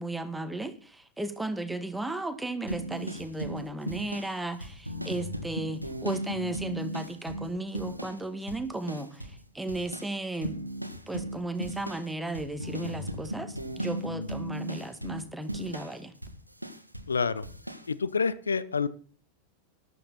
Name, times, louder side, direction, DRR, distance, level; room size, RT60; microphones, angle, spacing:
voice 1, 0.0-10.6 11.1-16.1, right 2 dB, 5° right, 9 dB, 1.7 m, -35 dB
sound 1, 2.7-8.2 8.5-9.4 9.7-17.1 17.4-17.9, right 1 dB, 90° right, 1.5 m, -37 dB
voice 2, 17.1-17.4 17.9-18.9, left 5 dB, 75° left, 16 dB, 0.8 m, -27 dB
14.0 x 12.5 x 4.1 m, 0.40 s
figure-of-eight pair, 90°, 0 cm